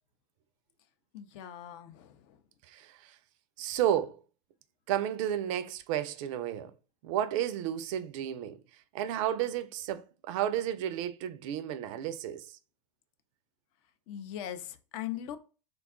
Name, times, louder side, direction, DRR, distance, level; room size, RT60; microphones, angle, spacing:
voice 1, 1.1-2.4 14.1-15.4, left 11 dB, 50° left, 0.5 m, -40 dB
voice 2, 2.7-3.1 3.6-4.2 4.9-6.7 7.0-8.6 8.9-12.6, right 11 dB, 50° right, 0.4 m, -32 dB
3.5 x 2.3 x 2.3 m
figure-of-eight pair, 85°, 20 cm